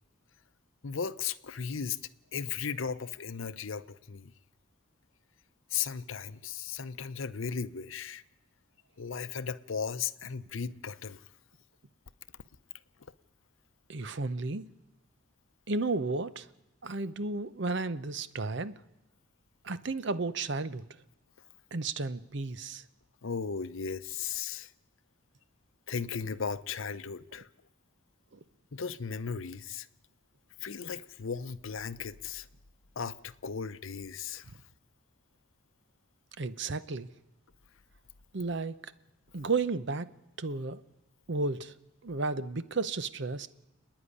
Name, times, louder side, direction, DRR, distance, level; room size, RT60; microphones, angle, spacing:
voice 1, 0.8-2.0 2.3-4.3 5.7-8.2 9.0-11.2 23.2-24.7 25.9-27.5 28.7-29.9 30.6-32.5 33.0-34.4, left 6 dB, 70° left, 0.7 m, -36 dB
voice 2, 13.9-14.7 15.7-16.5 16.8-18.7 19.6-20.8 21.7-22.8 28.3-28.4 36.4-37.1 38.3-38.9 39.3-40.1 40.4-40.8 41.3-41.7 42.0-43.5, right 3 dB, 55° right, 0.8 m, -33 dB
29.0 x 9.9 x 9.9 m
head